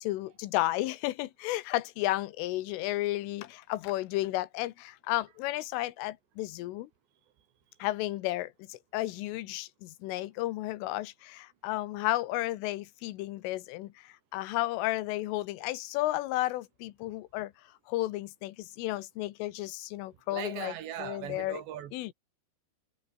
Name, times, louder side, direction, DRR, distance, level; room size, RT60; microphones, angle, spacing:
voice 1, 0.0-6.9 7.8-17.5 17.9-20.7 21.0-21.6 21.9-22.1, left 17 dB, 80° left, 3.6 m, -33 dB
voice 2, 20.3-22.1, right 11 dB, 65° right, 3.8 m, -39 dB
omnidirectional pair, 5.7 m